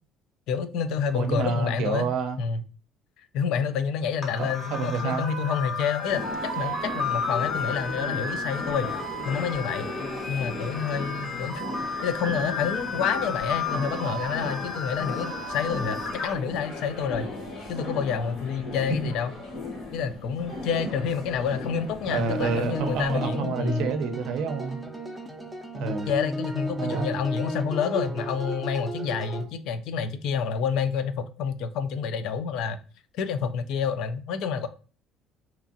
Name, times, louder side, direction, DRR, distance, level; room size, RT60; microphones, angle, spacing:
voice 1, 0.5-2.1 2.4-2.6 3.3-6.2 6.5-8.9 9.3-9.9 10.3-11.7 12.0-17.3 17.7-19.3 19.9-23.9 26.1-32.8 33.1-34.7, left 6 dB, 70° left, 0.3 m, -28 dB
voice 2, 1.1-2.4 4.4-5.2 22.1-24.8 25.7-26.1 26.8-27.1, right 5 dB, 70° right, 0.5 m, -28 dB
sound 1, 4.2-16.3, left 3 dB, 35° left, 0.8 m, -33 dB
sound 2, 6.1-23.2, left 2 dB, 50° left, 1.2 m, -37 dB
sound 3, 22.1-29.4, right 2 dB, ahead, 0.5 m, -34 dB
2.9 x 2.4 x 2.6 m
cardioid pair, 115°, 0 cm